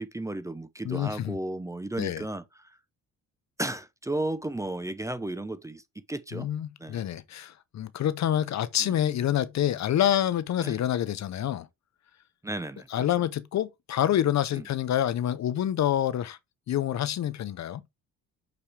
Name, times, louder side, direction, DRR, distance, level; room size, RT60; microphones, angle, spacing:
voice 1, 0.0-2.7 3.6-5.8 6.1-6.5 6.8-7.0 8.8-9.0 10.6-10.8 12.4-13.1 14.5-14.7, right 1 dB, 10° right, 0.7 m, -34 dB
voice 2, 0.8-1.4 2.0-2.2 6.3-11.7 12.9-16.4 16.7-17.8, left 11 dB, 55° left, 0.7 m, -27 dB
6.3 x 5.7 x 3.3 m
cardioid pair, 115°, 34 cm